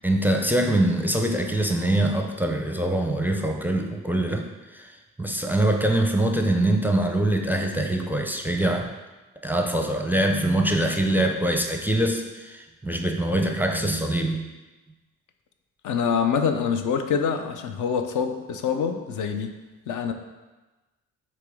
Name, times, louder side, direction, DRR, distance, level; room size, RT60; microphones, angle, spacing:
voice 1, 0.0-4.9 5.2-8.9 9.4-14.5, right 1 dB, 5° right, 3 dB, 0.5 m, -24 dB
voice 2, 15.8-19.6 19.9-20.1, left 6 dB, 60° left, 7 dB, 0.5 m, -25 dB
4.7 x 3.0 x 3.5 m, 1.2 s
hypercardioid pair, 45°, 34 cm